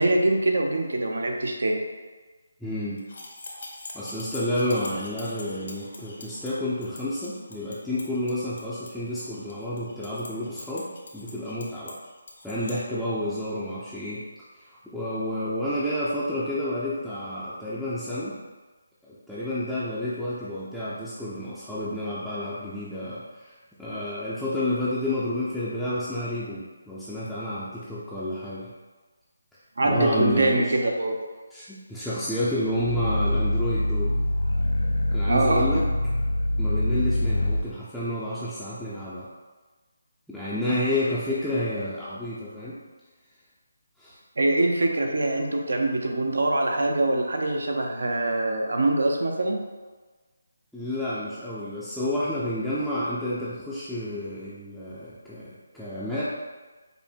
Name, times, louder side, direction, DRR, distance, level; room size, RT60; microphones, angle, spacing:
voice 1, 0.0-1.8 29.8-31.2 35.3-35.6 44.4-49.6, right 2 dB, 75° right, 2 dB, 0.7 m, -23 dB
voice 2, 2.6-3.0 3.9-12.0 12.4-14.2 14.5-18.4 19.0-28.7 29.8-30.7 31.5-34.2 35.1-35.9 36.6-39.3 40.3-42.8 44.0-44.2 50.7-56.2, left 1 dB, ahead, -12 dB, 0.5 m, -30 dB
sound 1, 3.0-12.8, left 2 dB, 60° left, 0.9 m, -44 dB
Growling, 32.7-37.7, left 1 dB, 85° left, 0.5 m, -24 dB
5.3 x 2.1 x 4.4 m, 1.3 s
figure-of-eight pair, 160°, 0 cm